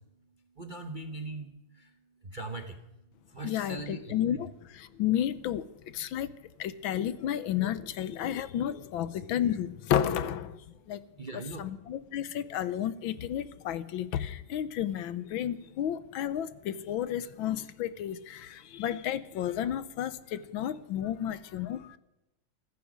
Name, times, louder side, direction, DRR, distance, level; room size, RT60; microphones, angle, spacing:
voice 1, 0.6-1.5 2.3-2.8 3.3-4.4 11.2-11.6, right 2 dB, 35° right, 0.8 m, -39 dB
voice 2, 3.4-5.6 5.9-6.3 6.6-10.6 10.9-11.0 11.6-22.0, left 10 dB, 75° left, 1.5 m, -32 dB
14.5 x 14.5 x 6.2 m
omnidirectional pair, 2.3 m